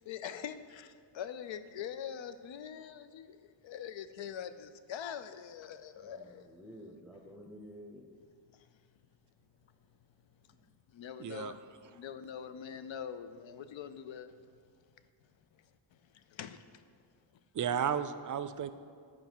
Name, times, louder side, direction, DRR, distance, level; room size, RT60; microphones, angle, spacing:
voice 1, 0.1-6.5 8.5-8.7 10.9-14.4 15.5-15.6 16.1-16.8, left 8 dB, 80° left, 0.6 m, -44 dB
voice 2, 5.9-8.2 10.4-10.6, equal, ahead, 0.6 m, -51 dB
voice 3, 11.2-11.5 17.6-18.7, right 8 dB, 45° right, 0.4 m, -33 dB
9.5 x 4.6 x 6.0 m
wide cardioid pair, 105°, 45 cm